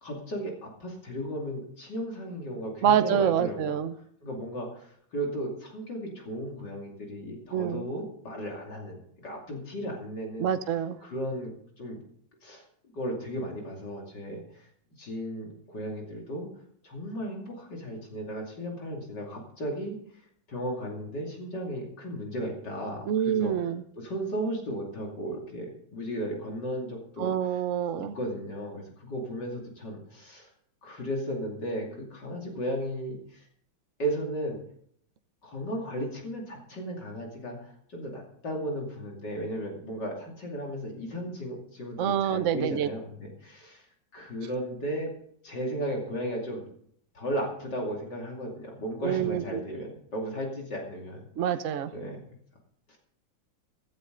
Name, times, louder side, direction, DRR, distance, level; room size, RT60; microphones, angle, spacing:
voice 1, 0.0-3.7 4.2-10.5 11.0-12.0 12.4-12.6 12.9-14.7 15.0-16.5 16.8-20.0 20.5-23.5 24.0-27.6 27.9-30.5 30.8-33.5 34.0-34.6 35.4-43.9 44.1-45.1 45.4-46.7 47.1-51.2 51.5-51.6 51.9-52.3 52.9-53.0, equal, 60° left, 0 dB, 3.3 m, -35 dB
voice 2, 2.8-3.9 7.5-7.9 10.4-11.0 23.1-23.8 27.2-28.2 42.0-42.9 49.0-49.4 51.4-51.9, right 9 dB, 55° right, 10 dB, 0.9 m, -26 dB
15.5 x 13.0 x 3.9 m, 0.64 s
omnidirectional pair, 2.2 m